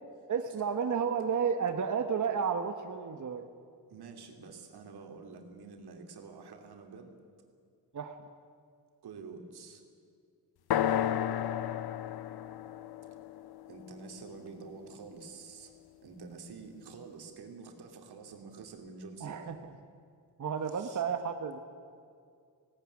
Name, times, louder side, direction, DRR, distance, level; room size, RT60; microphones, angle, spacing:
voice 1, 0.3-3.5 7.9-8.2 19.2-19.7 20.4-21.6, right 6 dB, 50° right, 5 dB, 1.3 m, -32 dB
voice 2, 3.9-7.2 9.0-9.8 13.7-15.7 16.0-19.5 20.7-21.0, right 4 dB, 85° right, 4 dB, 2.9 m, -48 dB
sound 1, 10.7-14.6, left 10 dB, 75° left, 0.8 m, -33 dB
19.5 x 18.0 x 9.8 m, 2.3 s
wide cardioid pair, 125°, 38 cm